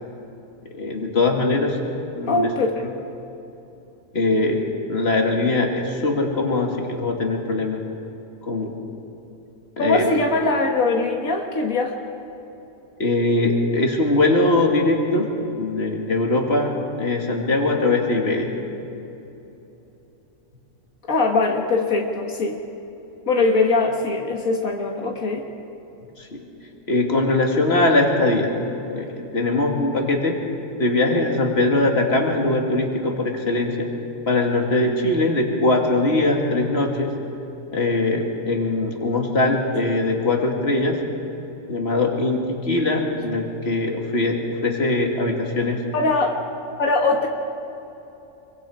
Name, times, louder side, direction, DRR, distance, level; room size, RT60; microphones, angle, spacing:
voice 1, 0.8-1.8 2.2-2.5 4.1-7.8 8.5-8.7 9.8-10.1 13.0-15.3 15.6-18.5 26.2-26.4 26.9-28.5 28.9-30.4 30.8-33.9 34.3-37.1 37.7-41.0 41.7-45.8, left 2 dB, 50° left, 1 dB, 2.7 m, -21 dB
voice 2, 2.3-2.7 9.8-11.9 21.1-22.6 23.3-25.4 45.9-46.4 46.8-47.3, left 3 dB, 85° left, 1 dB, 2.0 m, -21 dB
26.5 x 24.0 x 5.0 m, 3.0 s
omnidirectional pair, 1.4 m